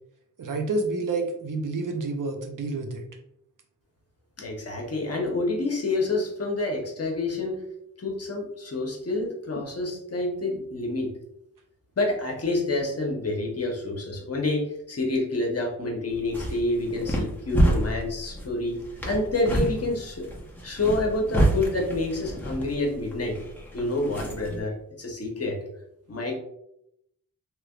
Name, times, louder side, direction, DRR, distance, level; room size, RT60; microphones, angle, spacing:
voice 1, 0.4-3.1, right 3 dB, 65° right, 4 dB, 0.7 m, -29 dB
voice 2, 4.4-7.6 8.0-11.1 12.0-18.8 19.0-20.3 20.6-23.4 23.7-25.6 26.1-26.3, left 2 dB, 45° left, 0 dB, 0.9 m, -28 dB
sound 1, 16.1-24.6, right 1 dB, 5° left, 0.8 m, -28 dB
3.3 x 3.0 x 2.4 m, 0.78 s
wide cardioid pair, 90°, 34 cm